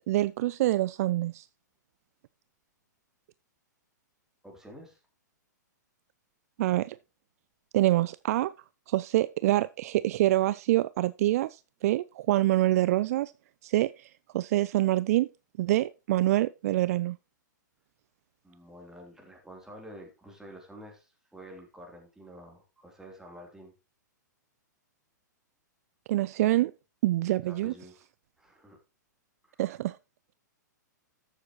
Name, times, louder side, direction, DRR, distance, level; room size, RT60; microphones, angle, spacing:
voice 1, 0.1-1.5 6.6-7.0 7.7-8.5 8.9-13.3 13.6-15.3 15.6-17.2 26.1-26.7 27.0-27.7 29.6-30.0, right 15 dB, 50° right, 0.4 m, -26 dB
voice 2, 4.4-5.0 18.4-23.7 27.5-28.0 28.4-28.8 29.4-29.6, right 1 dB, 5° right, 3.2 m, -49 dB
13.5 x 7.3 x 3.0 m
hypercardioid pair, 115°, 10 cm